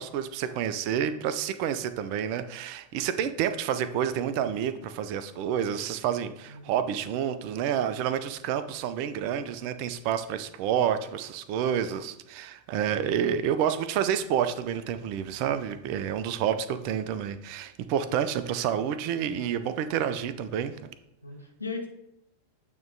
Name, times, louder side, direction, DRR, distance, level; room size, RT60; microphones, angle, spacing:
voice 1, 0.0-20.9, right 9 dB, 45° right, 12 dB, 0.5 m, -29 dB
voice 2, 21.2-21.9, left 4 dB, 80° left, 2 dB, 1.2 m, -37 dB
8.7 x 3.1 x 3.9 m, 0.85 s
figure-of-eight pair, 90°, 0 cm